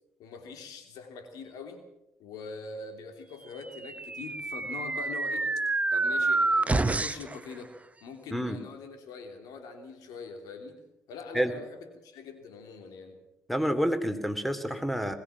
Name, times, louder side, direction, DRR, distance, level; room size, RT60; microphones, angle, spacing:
voice 1, 0.2-1.8 2.2-5.5 5.9-7.7 8.0-10.8 11.1-13.2, left 4 dB, 70° left, 6 dB, 3.1 m, -43 dB
sound 1, 3.7-7.4, right 3 dB, 20° right, 1.0 m, -28 dB
voice 2, 13.5-15.2, equal, ahead, 9 dB, 3.1 m, -28 dB
22.0 x 17.5 x 7.4 m, 0.88 s
hypercardioid pair, 45°, 6 cm